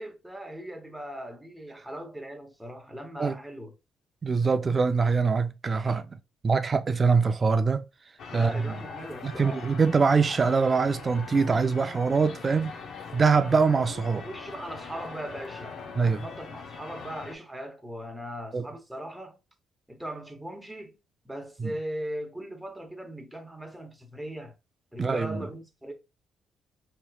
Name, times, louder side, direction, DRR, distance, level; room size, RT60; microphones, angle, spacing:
voice 1, 0.0-3.7 8.3-9.7 14.2-19.4 19.9-21.0 21.2-24.6 24.9-25.9, right 1 dB, 5° right, 0.9 m, -39 dB
voice 2, 4.2-6.1 6.4-7.8 8.3-8.7 9.2-12.7 13.1-14.3 16.0-16.2 18.5-18.7 21.6-21.7 25.0-25.4, right 5 dB, 35° right, 0.4 m, -23 dB
sound 1, 8.2-17.3, left 5 dB, 75° left, 0.6 m, -42 dB
4.4 x 2.9 x 2.3 m
cardioid pair, 90°, 0 cm